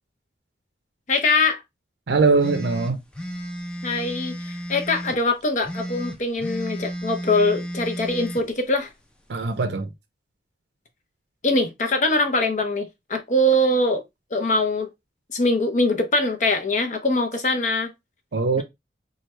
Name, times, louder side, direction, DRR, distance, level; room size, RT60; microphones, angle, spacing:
voice 1, 1.1-1.6 3.8-8.9 11.4-14.0 14.3-14.9 15.3-17.9, left 2 dB, 45° left, 0.8 m, -22 dB
voice 2, 2.1-3.0 9.3-9.9 18.3-18.6, right 3 dB, 75° right, 0.5 m, -21 dB
sound 1, 2.4-5.2 5.6-8.4, equal, 5° left, 0.5 m, -33 dB
3.2 x 2.4 x 4.3 m
head